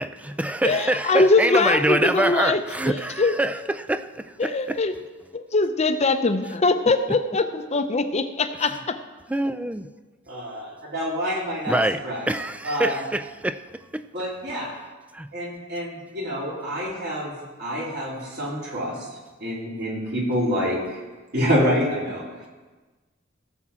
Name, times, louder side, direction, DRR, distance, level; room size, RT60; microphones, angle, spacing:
voice 1, 0.0-4.8 7.1-7.2 8.6-8.8 9.3-9.9 11.7-14.1 15.1-15.3, right 1 dB, 5° right, 11 dB, 0.3 m, -26 dB
voice 2, 0.6-2.6 2.9-3.3 4.4-4.9 5.3-9.0, left 3 dB, 35° left, 9 dB, 0.6 m, -22 dB
voice 3, 10.3-12.2 12.6-13.0 14.1-14.7 15.3-17.3 17.6-18.9 19.4-21.0 21.3-22.2, equal, 55° right, -5 dB, 3.7 m, -27 dB
17.0 x 7.3 x 4.3 m, 1.3 s
head